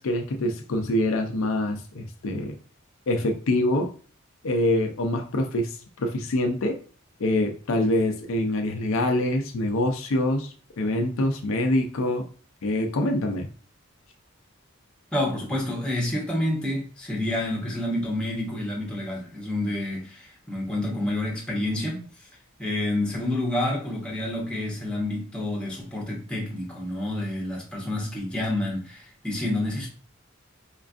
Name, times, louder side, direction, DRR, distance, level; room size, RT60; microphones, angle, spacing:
voice 1, 0.0-2.5 3.1-3.9 4.4-6.7 7.2-12.2 12.6-13.5, left 1 dB, 70° left, 0.5 m, -25 dB
voice 2, 15.1-22.3 22.6-29.9, left 1 dB, 5° left, 1.0 m, -29 dB
4.4 x 2.4 x 2.4 m
head